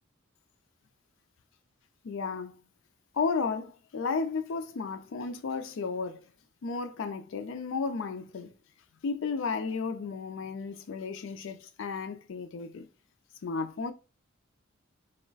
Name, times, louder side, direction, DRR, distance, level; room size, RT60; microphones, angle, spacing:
voice 1, 2.0-2.5 3.1-6.2 6.6-8.5 9.0-12.9 13.4-13.9, left 4 dB, 65° left, 0.4 m, -33 dB
2.3 x 2.1 x 3.8 m
head